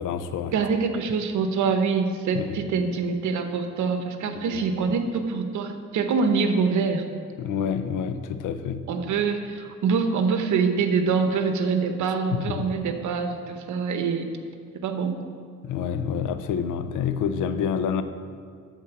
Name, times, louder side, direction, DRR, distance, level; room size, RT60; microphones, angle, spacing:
voice 1, 0.0-0.5 2.3-2.6 4.3-4.6 7.4-8.9 12.3-12.7 15.6-18.0, left 7 dB, 85° left, 10 dB, 0.7 m, -28 dB
voice 2, 0.5-7.1 8.9-14.3 14.8-15.2, right 5 dB, 75° right, 7 dB, 1.0 m, -25 dB
11.5 x 4.5 x 7.1 m, 2.1 s
cardioid pair, 90°, 30 cm